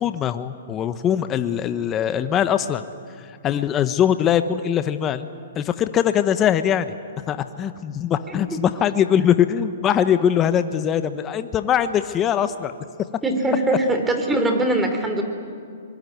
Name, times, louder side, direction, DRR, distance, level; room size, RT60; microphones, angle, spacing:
voice 1, 0.0-2.8 3.4-5.3 5.6-6.9 7.3-12.7, left 9 dB, 20° left, 11 dB, 0.9 m, -21 dB
voice 2, 13.2-15.2, right 1 dB, 10° right, 5 dB, 3.0 m, -21 dB
25.5 x 21.5 x 9.4 m, 2.3 s
hypercardioid pair, 145°, 0 cm